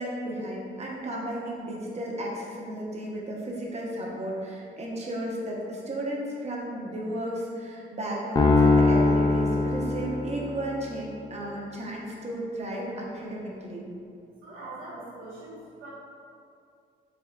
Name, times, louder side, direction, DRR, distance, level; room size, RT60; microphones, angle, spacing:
voice 1, 0.0-13.9, right 1 dB, 35° right, -2 dB, 0.7 m, -34 dB
sound 1, 8.4-10.7, left 3 dB, 20° left, 0.4 m, -21 dB
voice 2, 14.4-15.9, right 2 dB, 85° right, -8 dB, 0.9 m, -42 dB
3.5 x 3.4 x 2.3 m, 2.4 s
cardioid pair, 90°, 20 cm